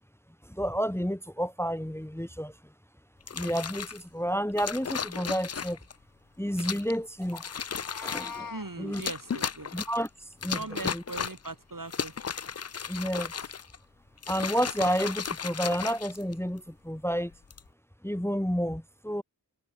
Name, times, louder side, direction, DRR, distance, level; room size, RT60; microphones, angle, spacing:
voice 1, 0.4-2.5 3.3-5.8 6.4-7.5 8.0-8.5 8.8-9.0 9.7-10.1 10.4-11.0 12.9-13.3 14.3-17.3 18.0-19.2, equal, 5° left, 1.3 m, -30 dB
sound 1, 3.2-4.0 4.6-5.9 6.6-7.0 7.3-8.4 8.9-10.1 10.4-11.5 11.9-13.8 14.2-16.6 17.3-17.7, left 6 dB, 40° left, 0.5 m, -35 dB
Meow, 7.6-8.7, left 5 dB, 60° left, 1.0 m, -41 dB
voice 2, 8.5-9.7 10.5-12.1, right 3 dB, 55° right, 2.9 m, -39 dB
wide cardioid pair, 45°, 39 cm